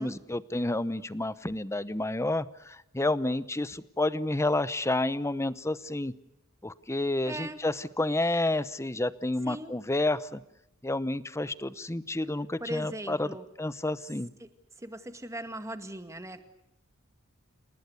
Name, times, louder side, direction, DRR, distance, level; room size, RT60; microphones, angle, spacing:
voice 1, 0.0-6.1 6.6-10.4 10.8-14.3, left 2 dB, 15° left, 16 dB, 0.8 m, -30 dB
voice 2, 7.3-7.6 9.5-9.8 12.6-13.4 14.4-14.5 14.8-16.4, right 1 dB, 15° right, 8 dB, 1.9 m, -39 dB
29.0 x 18.5 x 8.2 m, 0.85 s
head